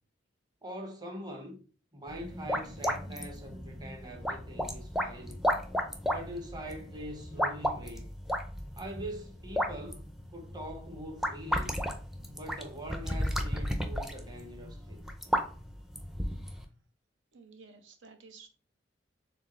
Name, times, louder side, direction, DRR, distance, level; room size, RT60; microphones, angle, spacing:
voice 1, 0.6-1.6 1.9-5.4 6.1-8.2 8.8-11.8 12.3-15.1, right 1 dB, 20° right, 0.9 m, -43 dB
sound 1, 2.1-16.6, equal, ahead, 0.4 m, -34 dB
voice 2, 17.3-18.5, right 4 dB, 80° right, 0.7 m, -53 dB
4.5 x 3.6 x 3.1 m
head